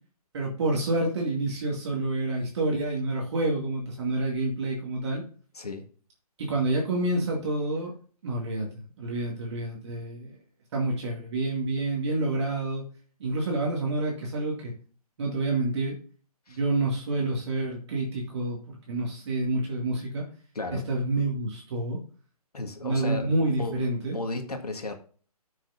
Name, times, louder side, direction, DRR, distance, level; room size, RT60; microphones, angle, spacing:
voice 1, 0.3-5.2 6.4-7.9 8.2-8.7 9.0-10.4 10.7-12.8 13.2-14.7 15.2-16.0 16.5-20.2 20.7-22.0 22.8-24.2, right 2 dB, 45° right, 2.3 m, -28 dB
voice 2, 5.5-5.9 16.5-16.6 20.5-20.9 22.5-23.3 23.6-23.8 24.1-24.9, left 2 dB, 75° left, 1.8 m, -34 dB
13.0 x 6.4 x 2.6 m
figure-of-eight pair, 140°, 20 cm